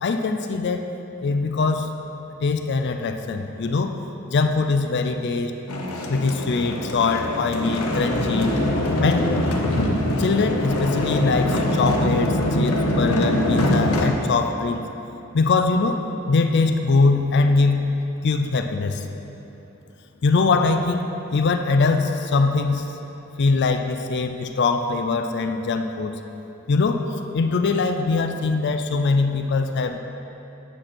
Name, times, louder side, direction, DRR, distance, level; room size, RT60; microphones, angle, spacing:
voice 1, 0.0-0.8 1.2-1.9 2.4-3.9 4.3-5.5 6.1-8.5 9.0-9.3 10.2-14.8 15.3-16.0 16.3-17.9 18.2-19.0 20.2-21.0 21.3-22.8 23.4-26.1 26.7-27.0 27.3-30.0, left 3 dB, 50° left, 6 dB, 0.4 m, -22 dB
sound 1, 5.7-14.1, left 1 dB, 75° left, 0.8 m, -23 dB
9.0 x 6.0 x 4.3 m, 3.0 s
head